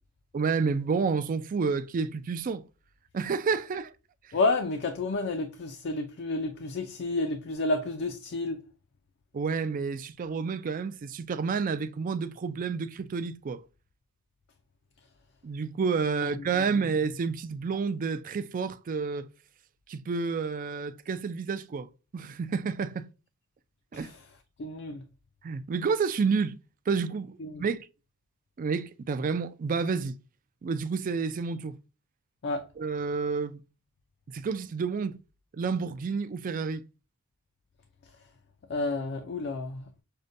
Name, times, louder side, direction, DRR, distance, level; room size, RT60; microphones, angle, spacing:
voice 1, 0.3-2.6 3.1-3.9 4.3-4.4 9.3-13.6 15.4-19.3 19.9-21.9 22.1-23.1 23.9-24.1 25.4-26.6 26.9-27.8 28.6-30.2 30.6-31.8 32.8-33.6 34.3-35.2 35.5-36.8, right 5 dB, 35° right, 0.3 m, -30 dB
voice 2, 4.3-8.6 23.9-24.2 24.6-25.0 27.4-27.6 32.4-32.6 38.7-39.8, left 2 dB, 50° left, 0.4 m, -30 dB
6.4 x 2.2 x 2.6 m
head